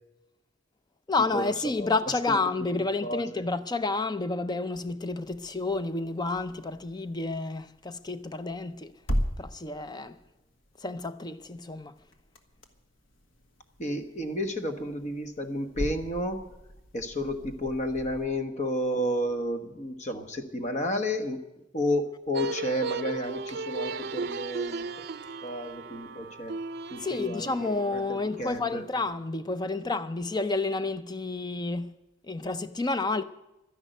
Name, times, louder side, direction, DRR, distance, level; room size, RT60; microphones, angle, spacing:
voice 1, 1.1-8.9 9.4-10.2 10.8-11.9 27.0-31.9 32.2-33.2, left 3 dB, 20° left, 0.6 m, -30 dB
voice 2, 3.0-3.4 13.8-16.4 16.9-21.4 21.7-24.8 25.4-26.5 26.9-28.8, left 1 dB, 40° left, 1.4 m, -31 dB
sound 1, 5.2-18.3, equal, 85° left, 1.6 m, -39 dB
sound 2, 22.3-29.1, right 4 dB, 55° right, 0.5 m, -36 dB
12.5 x 11.0 x 9.2 m
head